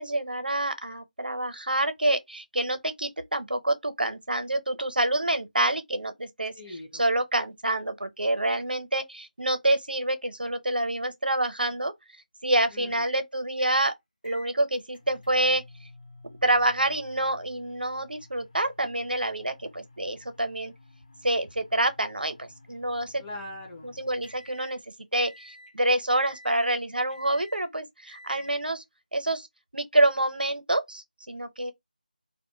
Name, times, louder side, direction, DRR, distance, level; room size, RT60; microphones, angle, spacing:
voice 1, 0.0-6.5 6.9-11.9 12.4-13.9 14.2-15.6 16.4-20.7 21.2-23.2 23.8-24.8 25.1-28.8 29.1-29.5 29.7-31.7, right 1 dB, 85° right, 0.6 m, -27 dB
voice 2, 6.5-7.0 12.7-13.0 23.2-24.0, left 1 dB, 15° left, 0.6 m, -41 dB
sound 1, 12.9-13.2 13.6-13.9 14.2-24.8 25.2-25.7 26.1-26.7 27.1-27.7 28.1-28.6, left 1 dB, 50° left, 1.0 m, -51 dB
2.5 x 2.1 x 2.9 m
figure-of-eight pair, 165°, 5 cm